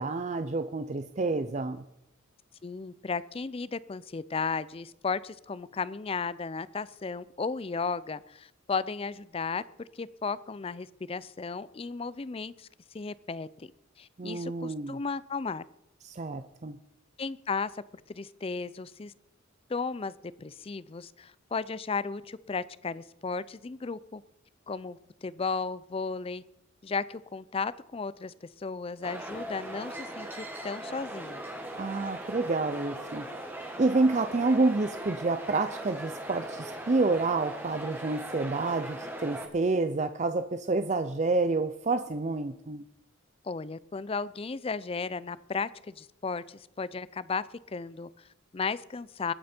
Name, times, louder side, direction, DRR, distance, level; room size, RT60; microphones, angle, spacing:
voice 1, 0.0-1.8 14.2-15.0 16.0-16.8 31.8-33.3 33.8-42.8, right 3 dB, 35° right, 9 dB, 0.5 m, -28 dB
voice 2, 2.6-12.7 12.9-13.7 14.0-15.7 17.2-17.8 18.1-19.1 19.7-20.1 20.4-24.2 24.7-26.4 26.8-31.5 43.4-49.3, left 4 dB, 30° left, 18 dB, 0.4 m, -35 dB
sound 1, 29.0-39.5, right 1 dB, 10° right, 1.6 m, -39 dB
21.0 x 8.5 x 4.4 m, 0.83 s
head